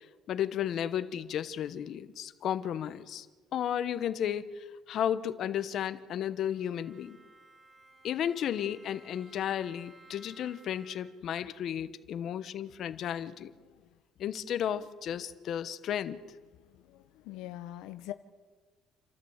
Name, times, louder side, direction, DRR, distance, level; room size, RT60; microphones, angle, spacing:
voice 1, 0.3-3.3 3.5-7.2 8.0-13.5 14.2-16.2, left 9 dB, 55° left, 12 dB, 1.0 m, -33 dB
Bowed string instrument, 6.4-11.4, right 2 dB, 15° right, 4.2 m, -58 dB
voice 2, 16.7-18.1, left 14 dB, 85° left, 10 dB, 0.8 m, -44 dB
28.0 x 13.0 x 8.1 m, 1.4 s
cardioid pair, 130°, 0 cm